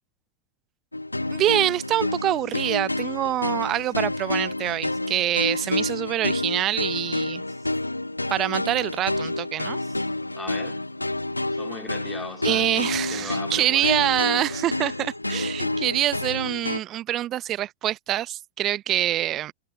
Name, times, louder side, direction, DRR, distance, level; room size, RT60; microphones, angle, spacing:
sound 1, 0.9-16.8, left 2 dB, 85° left, 2.1 m, -29 dB
voice 1, 1.3-7.4 8.3-9.8 12.4-19.5, right 13 dB, 30° right, 0.8 m, -25 dB
voice 2, 10.4-10.8 11.5-14.0, left 3 dB, 10° left, 3.2 m, -39 dB
figure-of-eight pair, 90°, 0 cm